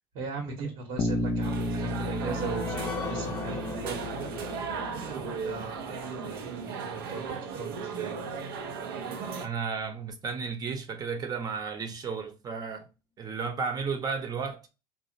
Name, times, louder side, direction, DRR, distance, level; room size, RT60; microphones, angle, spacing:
voice 1, 0.1-4.5 4.8-8.1, right 4 dB, 65° right, 1.0 m, -39 dB
Bass guitar, 1.0-5.0, left 2 dB, 45° left, 0.5 m, -33 dB
sound 1, 1.4-9.5, right 5 dB, 90° right, 0.5 m, -36 dB
sound 2, 1.9-8.9 9.4-9.5 9.8-9.9, left 3 dB, 20° left, 0.8 m, -41 dB
voice 2, 9.4-12.9 13.2-14.7, right 5 dB, 35° right, 0.7 m, -33 dB
2.7 x 2.0 x 2.5 m
supercardioid pair, 90°, 12 cm